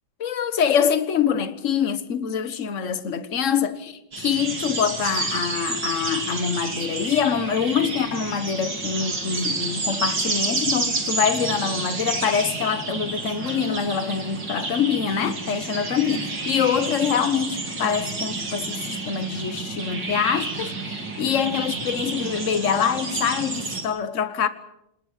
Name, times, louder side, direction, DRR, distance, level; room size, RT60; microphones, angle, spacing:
voice 1, 0.2-24.5, left 7 dB, 45° left, 1.5 m, -25 dB
sound 1, 4.1-23.8, right 3 dB, 65° right, 4.3 m, -30 dB
27.0 x 20.5 x 7.5 m
omnidirectional pair, 2.1 m